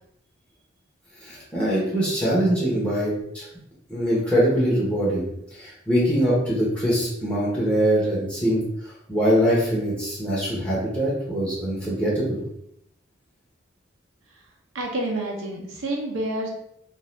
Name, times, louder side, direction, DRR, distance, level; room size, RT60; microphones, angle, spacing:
voice 1, 1.2-3.5 3.9-5.3 5.5-12.4, equal, 5° left, -7 dB, 0.9 m, -23 dB
voice 2, 14.7-16.5, right 1 dB, 85° right, -1 dB, 0.6 m, -28 dB
2.6 x 2.4 x 3.2 m, 0.75 s
head